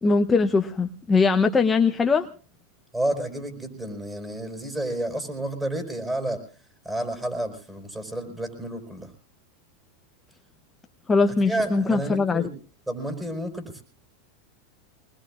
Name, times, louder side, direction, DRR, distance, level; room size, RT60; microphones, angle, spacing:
voice 1, 0.0-2.3 11.1-12.4, left 4 dB, 15° left, 5 dB, 0.7 m, -21 dB
voice 2, 2.9-6.4 6.8-9.1 11.4-12.5 12.9-13.8, right 1 dB, 10° right, 5 dB, 4.6 m, -30 dB
24.0 x 20.5 x 2.4 m, 0.38 s
supercardioid pair, 125°, 0 cm